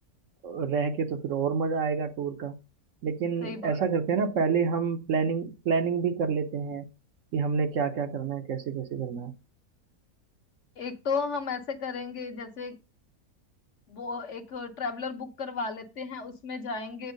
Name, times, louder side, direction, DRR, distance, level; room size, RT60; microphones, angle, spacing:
voice 1, 0.4-2.5 3.0-6.8 7.3-9.3, right 5 dB, 65° right, 1.0 m, -28 dB
voice 2, 3.4-3.8 10.8-12.8 13.9-17.1, left 4 dB, 60° left, 1.1 m, -34 dB
8.0 x 4.5 x 5.1 m
omnidirectional pair, 1.6 m